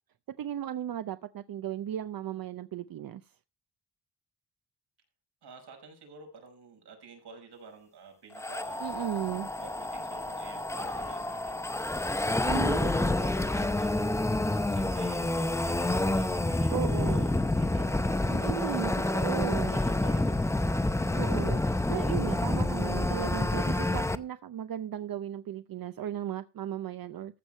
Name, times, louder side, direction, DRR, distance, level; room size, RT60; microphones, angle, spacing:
voice 1, 0.4-3.2 8.8-9.5 12.4-12.9 16.7-17.4 18.3-19.8 21.1-21.6 21.9-27.4, right 11 dB, 60° right, 0.7 m, -36 dB
voice 2, 5.4-8.8 9.6-12.2 12.5-14.1 14.7-19.3 19.7-21.4, right 4 dB, 80° right, 5.8 m, -50 dB
sound 1, 8.4-24.2, left 2 dB, 5° left, 0.6 m, -28 dB
14.5 x 7.2 x 4.4 m
wide cardioid pair, 170°, 40 cm